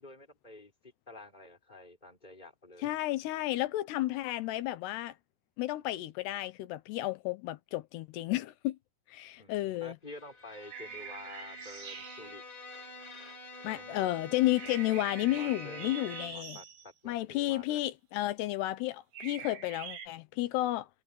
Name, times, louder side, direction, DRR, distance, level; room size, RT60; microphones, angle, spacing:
voice 1, 0.0-2.9 9.4-12.4 13.6-14.0 15.3-16.0 16.3-17.8, left 2 dB, 10° left, 3.9 m, -50 dB
voice 2, 2.8-5.1 5.6-8.8 9.1-10.0 13.6-16.6 17.1-20.9, left 16 dB, 75° left, 2.8 m, -32 dB
Bowed string instrument, 10.1-16.6, left 2 dB, 25° left, 4.7 m, -47 dB
sound 1, 10.7-12.4 14.6-16.9 19.1-20.1, right 8 dB, 65° right, 4.9 m, -45 dB
omnidirectional pair, 5.3 m